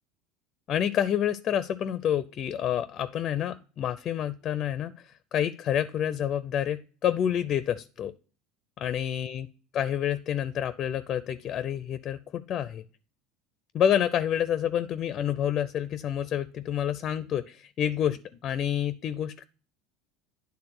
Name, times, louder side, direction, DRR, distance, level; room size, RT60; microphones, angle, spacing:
voice 1, 0.7-4.9 5.3-8.1 8.8-9.5 9.7-12.8 13.7-19.4, left 10 dB, 45° left, 14 dB, 0.5 m, -28 dB
9.8 x 3.5 x 6.0 m, 0.39 s
supercardioid pair, 110°, 0 cm